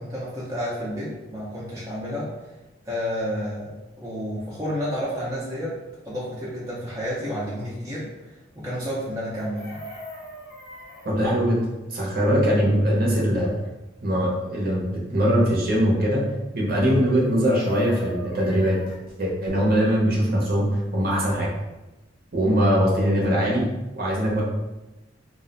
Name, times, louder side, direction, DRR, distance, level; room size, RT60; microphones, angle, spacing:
voice 1, 0.0-2.3 2.8-3.7 4.0-5.8 6.0-9.9, equal, 15° right, -8 dB, 0.5 m, -30 dB
Chicken rooster, 9.3-11.1 17.2-19.0 21.2-21.3 21.6-21.9, equal, 45° left, 0.6 m, -41 dB
voice 2, 11.0-11.6 11.9-13.5 14.0-16.2 16.5-18.8 19.2-20.7 20.9-21.5 22.3-23.7 23.9-24.4, equal, 50° right, -4 dB, 0.8 m, -21 dB
2.4 x 2.1 x 3.8 m, 1.0 s
head